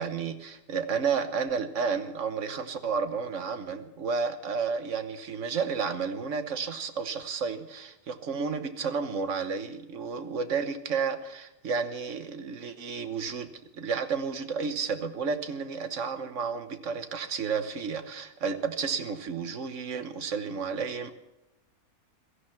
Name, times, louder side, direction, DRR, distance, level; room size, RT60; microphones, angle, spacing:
voice 1, 0.0-21.1, right 5 dB, 55° right, 9 dB, 1.4 m, -31 dB
17.0 x 13.0 x 5.8 m, 0.96 s
omnidirectional pair, 1.6 m